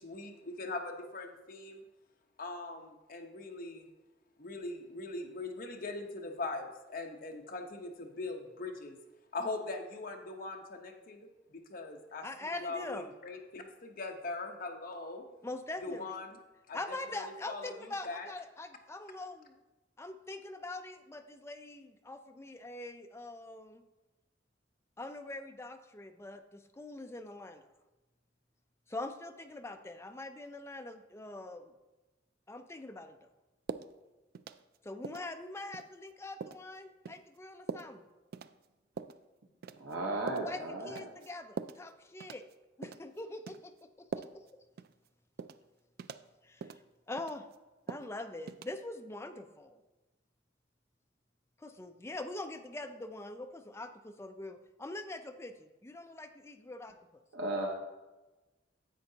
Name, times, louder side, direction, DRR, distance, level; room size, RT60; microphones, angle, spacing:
voice 1, 0.0-1.8 2.4-3.9 4.4-9.0 9.3-11.2 11.7-15.2 15.8-16.4 16.7-18.3, left 3 dB, 50° left, 2 dB, 1.0 m, -41 dB
voice 2, 12.2-13.1 15.4-16.2 16.7-19.6 20.0-23.8 25.0-27.7 28.9-31.7 32.5-33.2 34.8-38.0 40.4-42.4 42.8-44.4 46.4-46.7 47.1-47.5 47.9-49.8 51.6-57.0, left 2 dB, 15° left, 7 dB, 0.4 m, -43 dB
sound 1, 33.7-33.9 34.3-34.8 35.0-35.3 35.7-35.9 36.4-36.6 37.0-37.2 37.7-37.9 38.3-38.5 39.0-39.2 39.6-39.9 40.3-40.5 41.0-41.3 41.6-41.8 42.2-42.5 42.8-43.1 43.5-43.6 44.1-44.5 44.8-44.9 45.4-45.6 46.0-46.2 46.6-46.8 47.2-47.5 47.9-48.1 48.5-48.7, right 5 dB, 55° right, 0.3 m, -42 dB
voice 3, 39.8-41.0 57.3-57.7, right 2 dB, 75° right, -1 dB, 1.0 m, -35 dB
10.5 x 7.7 x 2.8 m, 1.1 s
head